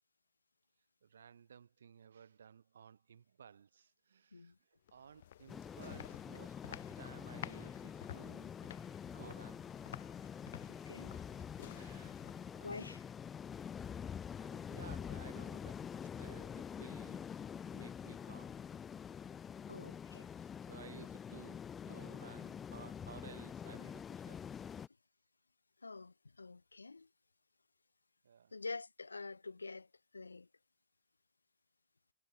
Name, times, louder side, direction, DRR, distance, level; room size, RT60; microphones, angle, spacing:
voice 1, 1.0-8.6 9.1-9.7 10.5-10.8 11.7-12.2 12.5-12.8 14.1-15.8 16.2-17.3 17.7-18.6 20.3-24.4 28.2-28.5, right 7 dB, 65° right, 4.2 m, -57 dB
sound 1, 4.9-12.7, left 11 dB, 55° left, 3.1 m, -53 dB
sound 2, 5.5-24.9, left 7 dB, 20° left, 0.6 m, -46 dB
voice 2, 10.6-11.1 12.6-13.0 19.7-20.3 25.8-27.1 28.5-29.9 30.1-30.5, left 3 dB, 80° left, 1.3 m, -47 dB
figure-of-eight pair, 100°, 0 cm